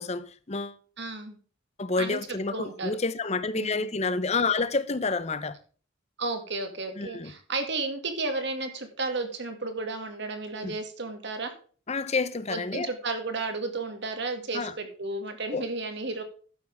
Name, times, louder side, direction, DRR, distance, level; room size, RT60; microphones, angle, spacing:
voice 1, 0.0-0.8 1.8-5.6 7.0-7.3 10.6-10.8 11.9-12.9 14.5-14.7 15.5-15.7, left 4 dB, 30° left, 0.7 m, -29 dB
voice 2, 1.0-1.4 2.0-2.2 2.5-2.9 3.5-3.9 6.2-11.5 12.5-16.2, right 3 dB, 55° right, 2.2 m, -33 dB
12.0 x 9.8 x 3.5 m
head